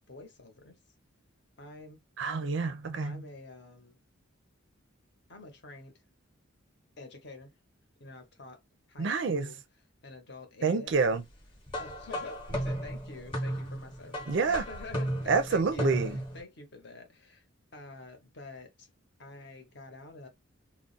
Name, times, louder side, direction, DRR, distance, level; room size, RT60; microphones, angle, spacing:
voice 1, 0.1-0.8 1.6-2.1 3.0-4.0 5.3-6.0 7.0-7.5 8.0-8.6 8.9-9.6 10.0-10.9 11.8-15.9 16.3-17.4 17.7-18.9 19.2-20.3, left 3 dB, 55° left, 0.8 m, -47 dB
voice 2, 2.2-3.2 9.0-9.5 10.6-11.2 14.3-14.6 15.3-16.2, right 4 dB, 55° right, 0.4 m, -28 dB
sound 1, 11.7-16.4, equal, 25° left, 0.8 m, -35 dB
2.4 x 2.0 x 3.8 m
head